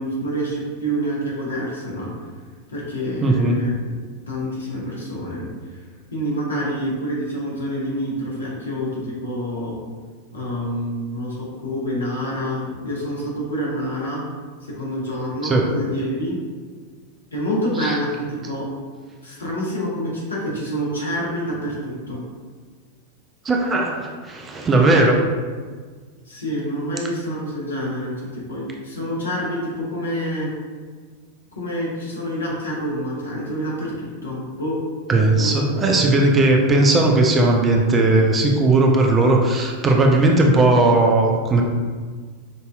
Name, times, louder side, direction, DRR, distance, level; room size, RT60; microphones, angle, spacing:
voice 1, 0.0-2.1 2.7-3.9 4.3-5.8 6.1-9.8 10.3-14.2 14.6-16.4 17.3-18.7 19.2-22.2 26.3-30.5 31.6-34.8 35.4-36.0, equal, 75° left, -4 dB, 1.0 m, -27 dB
voice 2, 3.2-3.6 15.4-15.7 17.8-18.0 23.4-25.2 35.1-41.6, right 2 dB, 20° right, 1 dB, 0.5 m, -17 dB
5.2 x 2.7 x 2.3 m, 1.5 s
figure-of-eight pair, 90°, 0 cm